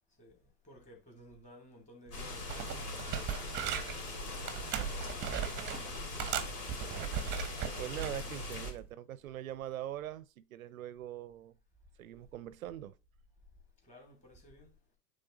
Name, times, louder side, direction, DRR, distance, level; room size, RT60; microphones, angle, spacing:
voice 1, 0.2-3.7 4.9-6.0 6.3-7.4 13.8-14.7, left 1 dB, 15° left, 3.1 m, -57 dB
sound 1, 2.1-8.7, left 2 dB, 65° left, 3.4 m, -41 dB
sound 2, 2.1-2.2 2.5-4.0 4.5-5.8 6.2-8.2 8.6-8.9, right 9 dB, 20° right, 0.9 m, -38 dB
voice 2, 4.6-4.9 7.8-11.6 12.0-12.9, right 12 dB, 55° right, 0.7 m, -42 dB
9.2 x 3.7 x 3.9 m
figure-of-eight pair, 110°, 49 cm